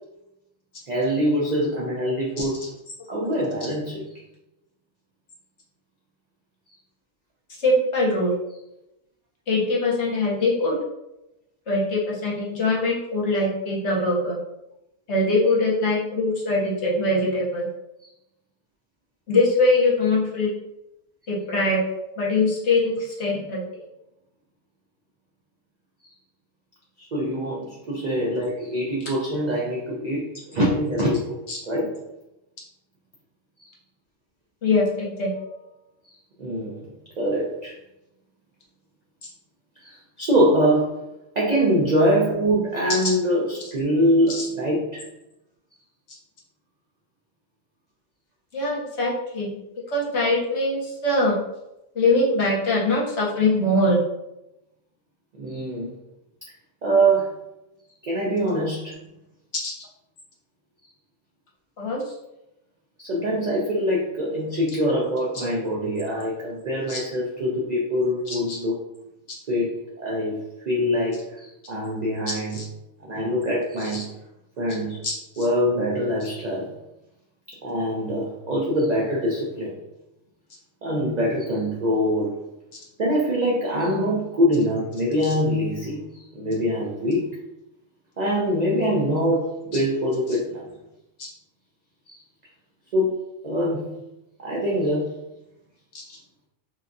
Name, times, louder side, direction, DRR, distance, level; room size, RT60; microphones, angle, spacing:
voice 1, 0.9-2.6 3.1-4.1 27.1-31.4 31.7-31.9 33.6-33.7 36.4-36.9 37.2-37.7 39.8-41.0 41.4-45.1 55.3-55.9 56.8-57.3 58.0-58.9 63.0-68.8 69.5-72.6 73.0-74.1 74.6-75.0 75.4-76.7 77.6-79.7 80.8-82.4 83.0-87.4 88.2-90.7 92.1-92.2 92.9-93.1 93.4-93.9 94.4-95.1 96.0-96.1, equal, 85° right, -4 dB, 0.3 m, -24 dB
voice 2, 7.6-8.3 9.5-10.7 11.7-14.4 15.1-17.7 19.3-20.5 21.3-21.8 22.2-23.6 31.5-31.6 34.6-35.3 43.0-43.1 44.4-44.5 48.5-49.6 49.9-51.4 51.9-54.0 59.6-59.7 61.8-62.0 66.9-67.0 68.3-68.6 72.5-72.6 73.8-74.0 75.0-75.4 89.7-89.8, left 2 dB, 60° left, -4 dB, 1.1 m, -22 dB
2.8 x 2.2 x 2.5 m, 0.89 s
omnidirectional pair, 1.4 m